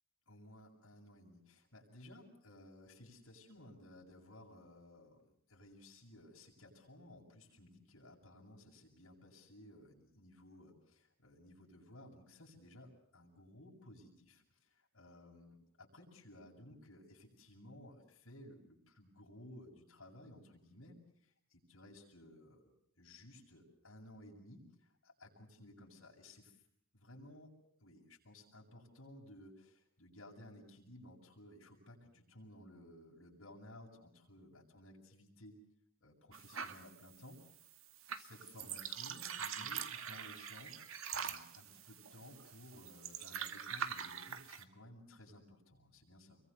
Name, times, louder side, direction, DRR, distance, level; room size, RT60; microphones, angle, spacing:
voice 1, 0.3-22.7 23.0-26.5 26.9-27.5 27.8-35.6 36.0-37.4 38.2-46.4, left 1 dB, 75° left, -3 dB, 7.4 m, -57 dB
sound 1, 36.3-44.6, right 7 dB, 75° right, 2.0 m, -44 dB
29.5 x 23.5 x 6.9 m, 0.70 s
head